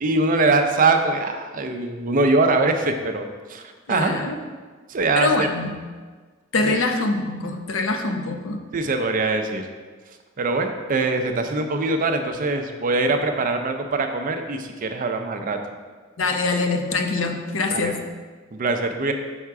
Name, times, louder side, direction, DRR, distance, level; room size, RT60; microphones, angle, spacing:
voice 1, 0.0-3.2 3.5-4.2 4.9-5.5 6.7-6.8 8.7-9.6 10.4-15.6 17.7-17.9 18.5-19.1, right 3 dB, 45° right, 6 dB, 0.5 m, -22 dB
voice 2, 3.9-4.4 5.2-5.7 6.5-8.6 16.2-18.0, left 3 dB, 70° left, 4 dB, 0.6 m, -24 dB
5.5 x 3.6 x 4.7 m, 1.4 s
head